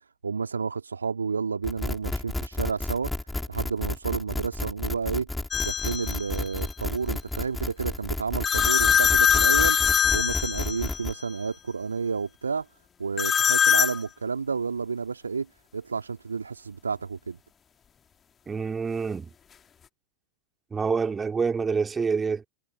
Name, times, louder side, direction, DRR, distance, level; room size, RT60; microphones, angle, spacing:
voice 1, 0.2-3.1 3.5-5.3 5.6-12.7 13.0-15.5 15.7-17.4, right 5 dB, 75° right, 2.8 m, -31 dB
sound 1, 1.6-11.1, left 2 dB, 5° left, 4.9 m, -32 dB
sound 2, 5.5-6.2 8.4-11.1 13.2-14.0, left 7 dB, 20° left, 2.4 m, -22 dB
voice 2, 18.5-19.3 20.7-22.5, right 5 dB, 15° right, 2.8 m, -27 dB
figure-of-eight pair, 90°, 0 cm